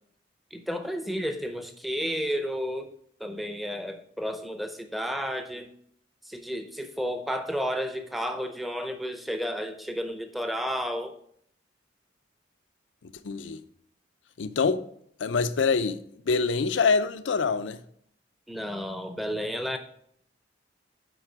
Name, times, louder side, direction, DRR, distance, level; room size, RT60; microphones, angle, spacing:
voice 1, 0.5-2.9 3.2-5.7 6.2-11.2 18.5-19.8, equal, ahead, 0.5 m, -32 dB
voice 2, 13.0-13.6 14.4-14.8 15.2-16.0 16.3-17.8, left 4 dB, 90° left, 0.5 m, -25 dB
7.9 x 4.8 x 4.7 m
head